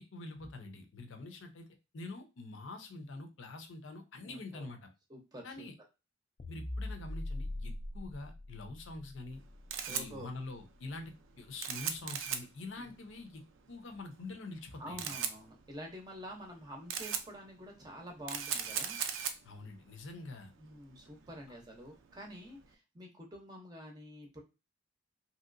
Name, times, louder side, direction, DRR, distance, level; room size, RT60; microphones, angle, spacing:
voice 1, 0.0-1.7 1.9-4.9 5.4-5.7 6.5-9.4 9.9-13.4 13.7-15.0 19.4-20.5, left 2 dB, 75° left, 5 dB, 0.6 m, -45 dB
voice 2, 4.2-4.7 5.1-5.7 9.9-10.3 12.7-12.9 14.8-19.0 20.6-24.4, equal, 20° right, 1 dB, 0.6 m, -48 dB
sound 1, 6.4-10.9, left 1 dB, 35° left, 0.3 m, -42 dB
Camera, 9.3-22.7, right 8 dB, 80° right, 0.4 m, -41 dB
3.0 x 2.8 x 2.5 m, 0.27 s
head